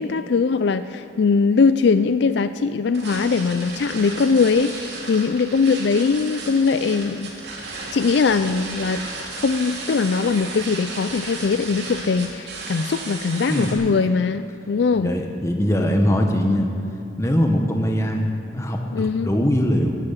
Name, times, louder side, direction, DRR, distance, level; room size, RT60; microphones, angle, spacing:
voice 1, 0.0-7.3 7.9-9.0 9.4-15.2 18.9-19.3, left 5 dB, 65° left, 12 dB, 0.4 m, -21 dB
sound 1, 2.9-13.7, right 3 dB, 60° right, 2.7 m, -34 dB
voice 2, 15.0-16.7 17.2-20.0, equal, 15° left, 3 dB, 1.1 m, -21 dB
16.0 x 10.5 x 5.7 m, 2.9 s
head